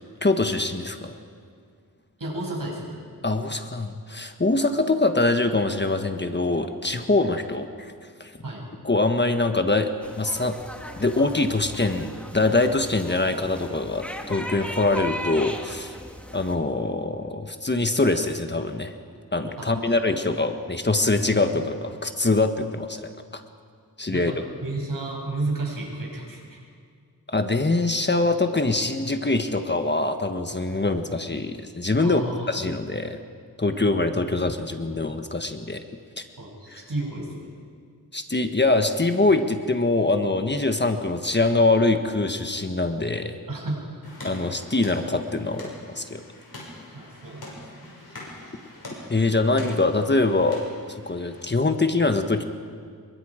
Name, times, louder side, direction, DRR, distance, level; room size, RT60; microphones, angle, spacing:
voice 1, 0.2-1.2 3.2-7.9 8.2-8.3 8.8-10.6 11.0-16.0 16.3-18.9 19.3-23.4 24.0-24.3 27.3-33.2 33.6-35.8 36.2-36.3 36.7-36.8 38.1-43.3 44.2-46.2 49.1-50.6 51.1-52.4, left 2 dB, 30° left, 6 dB, 1.3 m, -24 dB
voice 2, 2.2-3.0 8.4-8.6 19.6-19.9 24.1-26.6 32.0-32.6 36.4-37.5 43.5-43.8 46.9-47.9, right 2 dB, 70° right, -1 dB, 6.7 m, -32 dB
sound 1, 10.0-16.5, equal, 5° left, 2.3 m, -37 dB
sound 2, 44.0-51.4, left 1 dB, 85° left, 6.3 m, -43 dB
28.0 x 23.0 x 5.0 m, 2.1 s
wide cardioid pair, 80°, 35 cm